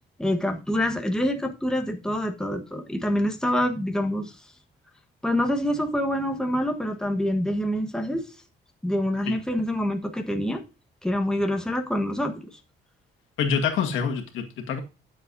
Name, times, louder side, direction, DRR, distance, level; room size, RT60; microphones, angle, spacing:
voice 1, 0.2-4.3 5.2-8.2 8.8-10.6 11.0-12.3, left 1 dB, 5° left, 1.4 m, -26 dB
voice 2, 13.4-14.8, left 6 dB, 85° left, 1.9 m, -26 dB
12.0 x 7.3 x 2.7 m
cardioid pair, 90°, 20 cm